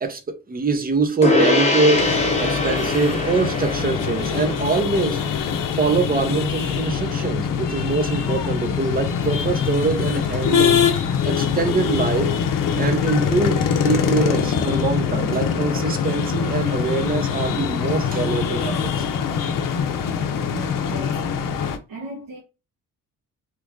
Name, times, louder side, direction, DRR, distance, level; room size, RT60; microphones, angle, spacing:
voice 1, 0.0-5.2 5.8-10.8 11.2-12.3 12.8-19.0, right 4 dB, 25° right, 0.7 m, -24 dB
Gong, 1.2-10.9, left 2 dB, 20° left, 0.9 m, -26 dB
sound 1, 1.9-21.8, left 7 dB, 70° left, 0.6 m, -23 dB
voice 2, 20.4-21.4 21.9-22.4, equal, 80° right, 1.1 m, -36 dB
2.9 x 2.5 x 3.6 m
cardioid pair, 100°, 34 cm